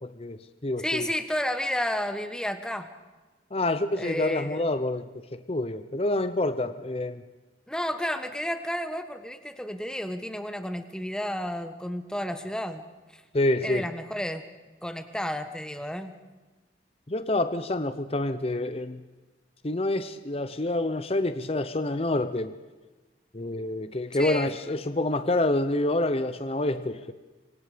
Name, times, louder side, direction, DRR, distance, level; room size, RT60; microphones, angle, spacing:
voice 1, 0.0-1.1 3.5-7.2 13.3-13.9 17.1-19.0 19.6-22.5 23.3-27.1, left 2 dB, 35° left, 11 dB, 0.8 m, -27 dB
voice 2, 0.8-2.9 3.9-4.6 7.7-12.8 13.1-13.2 13.6-14.4 14.8-16.1 24.2-24.5, equal, 5° left, 8 dB, 1.4 m, -31 dB
25.5 x 25.0 x 5.2 m, 1.2 s
head